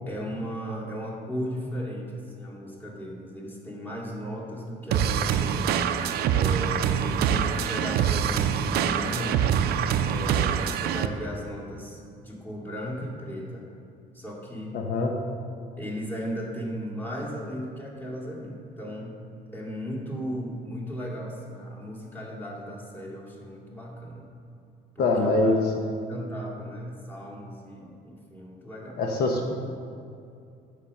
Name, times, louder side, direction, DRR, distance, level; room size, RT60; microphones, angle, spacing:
voice 1, 0.1-5.7 6.3-9.4 10.1-13.7 14.1-14.8 15.8-19.1 19.5-24.3 25.0-25.6 26.1-29.3, equal, 10° left, -4 dB, 2.1 m, -36 dB
sound 1, 4.9-11.1, right 8 dB, 70° right, 0.5 m, -25 dB
voice 2, 14.7-15.1 25.0-25.6 29.0-29.5, left 2 dB, 65° left, 2 dB, 0.9 m, -24 dB
8.6 x 5.2 x 6.5 m, 2.5 s
cardioid pair, 110°, 17 cm